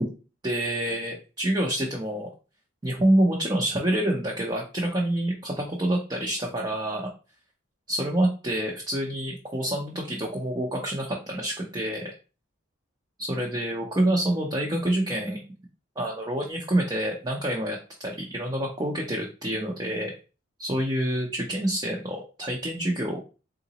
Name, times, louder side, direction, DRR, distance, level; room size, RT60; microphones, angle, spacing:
voice 1, 0.4-2.3 2.8-7.1 7.9-12.1 13.2-15.4 16.0-20.1 20.6-23.2, right 1 dB, 20° right, -1 dB, 0.6 m, -27 dB
3.8 x 3.8 x 2.9 m, 0.34 s
head